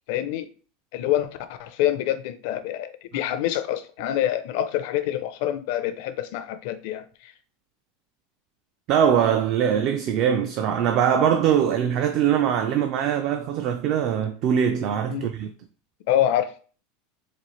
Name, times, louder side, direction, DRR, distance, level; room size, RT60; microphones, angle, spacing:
voice 1, 0.1-0.5 0.9-7.3 15.1-15.3 16.1-16.5, left 12 dB, 55° left, 0.4 m, -26 dB
voice 2, 8.9-15.5, right 8 dB, 40° right, 0.3 m, -22 dB
4.1 x 2.5 x 3.1 m
supercardioid pair, 165°, 0 cm